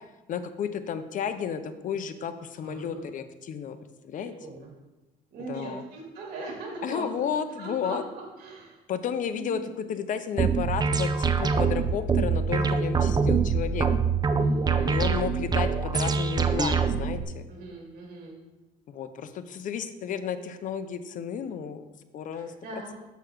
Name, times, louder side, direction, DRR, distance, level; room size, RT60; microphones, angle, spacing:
voice 1, 0.3-3.8 4.0-4.3 5.5-5.8 6.8-8.0 8.9-13.9 14.7-17.4 18.9-21.8 22.1-22.5, left 7 dB, 50° left, 10 dB, 0.7 m, -32 dB
voice 2, 2.6-3.0 4.2-4.7 5.3-7.3 7.6-8.8 9.3-9.7 12.8-13.1 14.3-15.0 17.5-18.4 22.4-22.9, right 3 dB, 60° right, -2 dB, 2.5 m, -40 dB
sound 1, 10.4-17.2, right 5 dB, 25° right, 0.5 m, -24 dB
6.9 x 6.0 x 4.6 m, 1.1 s
cardioid pair, 110°, 17 cm